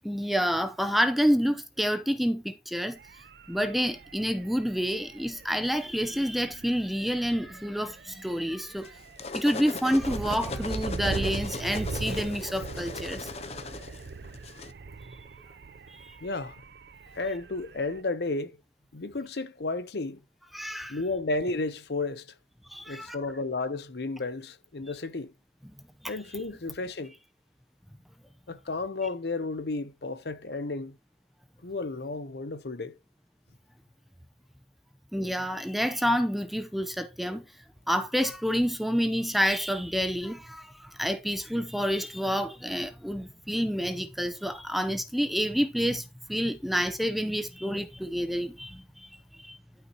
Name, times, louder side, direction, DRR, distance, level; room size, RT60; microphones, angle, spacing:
voice 1, 0.0-3.0 3.5-9.0 9.3-13.3 15.9-16.1 20.5-21.0 22.7-23.2 26.0-26.1 35.1-37.5 37.9-49.6, equal, ahead, 0.7 m, -28 dB
sound 1, 3.0-18.0, right 3 dB, 70° right, 0.5 m, -40 dB
sound 2, 8.8-14.7, left 3 dB, 35° left, 0.7 m, -38 dB
voice 2, 16.2-16.6 17.1-18.5 18.9-20.2 20.9-22.3 22.9-25.3 26.1-27.1 28.5-31.0 31.6-33.0, left 3 dB, 70° left, 0.8 m, -32 dB
12.0 x 5.8 x 2.9 m
head